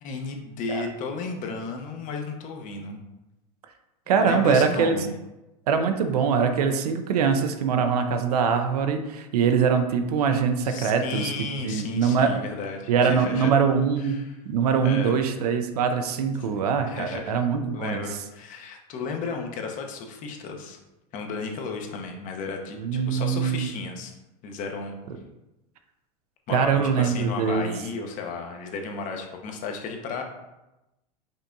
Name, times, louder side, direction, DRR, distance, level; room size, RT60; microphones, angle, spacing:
voice 1, 0.0-3.0 4.2-5.1 10.6-13.5 14.0-14.3 14.8-15.2 16.4-16.5 16.8-17.4 17.7-20.8 21.1-22.8 23.1-24.1 24.4-25.0 26.5-30.2, left 4 dB, 40° left, 3 dB, 0.8 m, -33 dB
voice 2, 4.1-5.0 5.7-11.3 11.6-12.4 12.9-18.0 22.8-23.7 26.5-27.6, right 6 dB, 85° right, 7 dB, 0.5 m, -23 dB
5.4 x 3.4 x 2.6 m, 0.97 s
hypercardioid pair, 115°, 19 cm